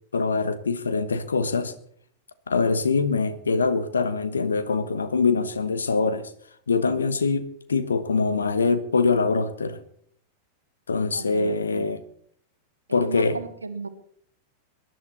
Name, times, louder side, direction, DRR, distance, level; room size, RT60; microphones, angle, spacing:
voice 1, 0.1-1.7 2.5-6.3 6.7-9.8 10.9-12.0 12.9-13.4, left 4 dB, 75° left, 1.2 m, -24 dB
voice 2, 11.1-12.1 12.9-13.9, right 4 dB, 80° right, 1.3 m, -36 dB
21.5 x 11.0 x 4.2 m
figure-of-eight pair, 90°, 0 cm